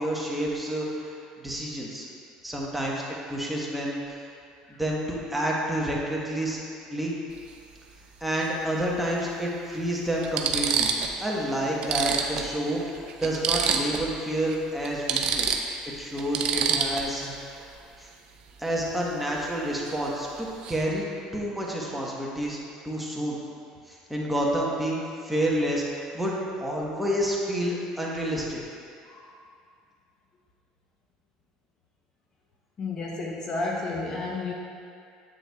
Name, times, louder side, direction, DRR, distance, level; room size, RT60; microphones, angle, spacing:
voice 1, 0.0-2.1 2.4-3.0 3.3-4.3 4.8-7.2 8.2-10.9 11.2-15.5 15.9-17.7 18.0-18.1 18.6-21.0 21.3-22.6 22.8-23.4 23.9-28.6, right 1 dB, 5° right, -4 dB, 1.1 m, -29 dB
sound 1, 7.3-7.5 9.0-9.1 9.7-9.8 10.2-11.2 11.5-11.6 11.8-14.1 14.4-14.5 14.8-17.3 19.9-20.1 20.4-20.8, right 6 dB, 50° right, 0.5 m, -27 dB
voice 2, 32.8-34.5, left 3 dB, 30° left, -2 dB, 0.7 m, -31 dB
7.8 x 7.6 x 2.3 m, 2.4 s
cardioid pair, 120°, 2 cm